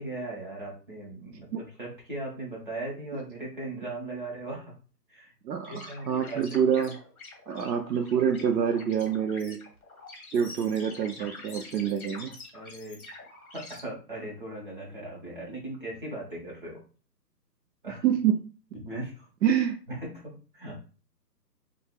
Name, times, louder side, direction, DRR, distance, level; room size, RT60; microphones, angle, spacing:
voice 1, 0.0-1.5 1.8-4.7 5.1-5.3 5.7-6.6 11.2-11.7 12.5-13.0 13.5-16.8 17.8-18.0 18.7-19.3 19.9-20.8, right 2 dB, 30° right, -4 dB, 1.0 m, -38 dB
voice 2, 5.4-7.0 7.5-9.6 10.3-12.3 18.0-18.4 19.4-19.8, right 8 dB, 80° right, 5 dB, 0.6 m, -26 dB
sound 1, 5.6-13.8, left 3 dB, 55° left, 1.1 m, -46 dB
3.0 x 2.4 x 2.2 m, 0.36 s
hypercardioid pair, 175°, 50 cm